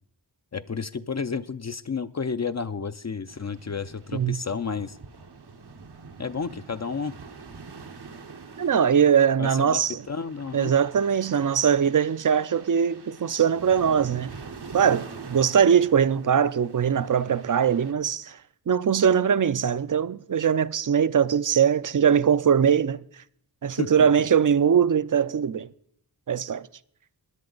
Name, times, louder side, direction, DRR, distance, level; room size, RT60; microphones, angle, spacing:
voice 1, 0.5-5.0 6.2-7.1 9.4-9.8 10.1-10.7 23.8-24.1, left 5 dB, 40° left, 0.5 m, -31 dB
sound 1, 3.3-17.9, right 4 dB, 70° right, 1.1 m, -45 dB
voice 2, 8.6-10.0 10.5-14.4 14.7-18.4 18.7-23.0 23.6-25.7 26.3-26.7, right 7 dB, 50° right, 0.5 m, -21 dB
16.5 x 10.5 x 3.9 m
wide cardioid pair, 50°, 41 cm